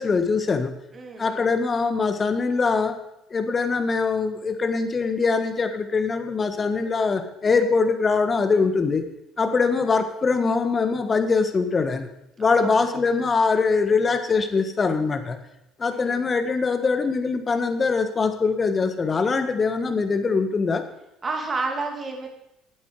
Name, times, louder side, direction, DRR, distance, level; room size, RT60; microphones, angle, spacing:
voice 1, 0.0-0.8 1.2-3.0 3.3-9.0 9.4-12.1 12.4-15.4 15.8-20.8, left 4 dB, 35° left, 8 dB, 1.4 m, -22 dB
voice 2, 0.9-1.4 9.4-9.6 12.6-12.7 15.9-16.2 21.2-22.3, right 3 dB, 35° right, 3 dB, 2.5 m, -30 dB
11.5 x 8.6 x 4.8 m, 0.85 s
hypercardioid pair, 60°, 0 cm